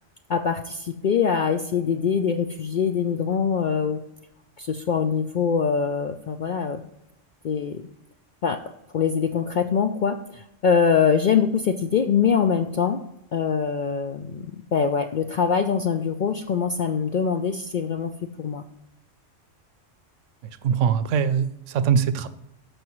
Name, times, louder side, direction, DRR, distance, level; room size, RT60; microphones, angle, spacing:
voice 1, 0.3-4.0 4.6-6.8 7.4-7.8 8.4-8.6 8.9-13.0 13.3-18.1 18.4-18.6, left 6 dB, 65° left, 7 dB, 0.4 m, -23 dB
voice 2, 20.6-22.3, right 7 dB, 80° right, 13 dB, 0.9 m, -22 dB
13.5 x 4.9 x 3.1 m, 0.84 s
omnidirectional pair, 1.3 m